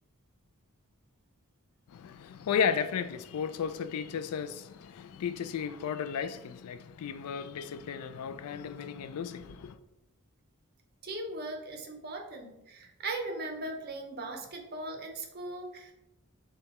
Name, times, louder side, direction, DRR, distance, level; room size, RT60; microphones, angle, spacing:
voice 1, 1.9-9.8, left 7 dB, 85° left, 0.3 m, -34 dB
voice 2, 11.0-15.9, right 2 dB, 45° right, 0.7 m, -39 dB
6.3 x 2.3 x 3.0 m
head